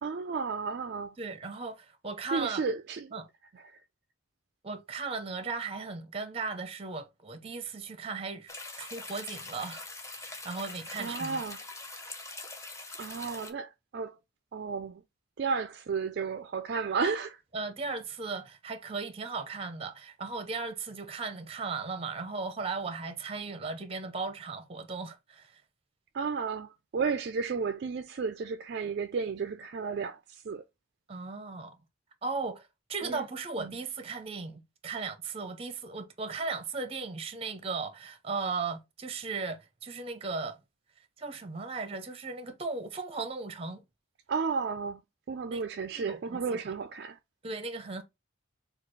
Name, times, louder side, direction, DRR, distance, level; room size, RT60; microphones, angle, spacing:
voice 1, 0.0-1.2 2.3-3.1 3.5-3.8 11.0-11.6 13.0-14.2 14.5-15.0 15.4-17.4 26.1-30.6 33.0-33.2 33.6-33.8 44.3-45.0 45.3-47.2, right 5 dB, 55° right, 0.3 m, -33 dB
voice 2, 1.2-2.6 3.1-3.3 4.6-9.9 10.1-11.4 17.5-25.6 31.1-31.8 32.2-40.6 41.2-43.8 45.5-45.6 46.0-46.6 47.4-48.0, right 4 dB, 30° right, 0.7 m, -37 dB
sound 1, 8.5-13.5, left 2 dB, 15° left, 0.5 m, -43 dB
6.4 x 2.3 x 3.1 m
head